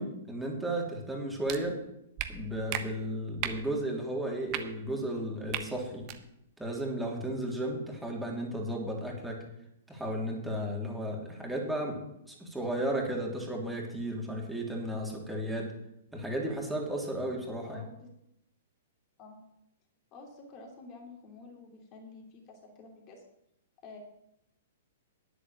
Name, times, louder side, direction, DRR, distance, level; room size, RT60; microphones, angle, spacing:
voice 1, 0.0-1.8 2.3-6.1 6.6-9.4 9.9-12.0 12.2-15.7 16.1-17.8, right 1 dB, 5° right, -2 dB, 3.3 m, -34 dB
sound 1, 1.5-1.6 2.2-2.3 2.7-2.8 3.4-3.6 4.5-4.6 5.5-5.6 6.0-6.2, right 12 dB, 35° right, 1.2 m, -34 dB
voice 2, 17.6-18.1 19.2-19.4 20.1-23.2 23.8-24.0, left 3 dB, 35° left, 1 dB, 3.1 m, -49 dB
10.0 x 8.3 x 7.4 m, 0.82 s
hypercardioid pair, 115°, 0 cm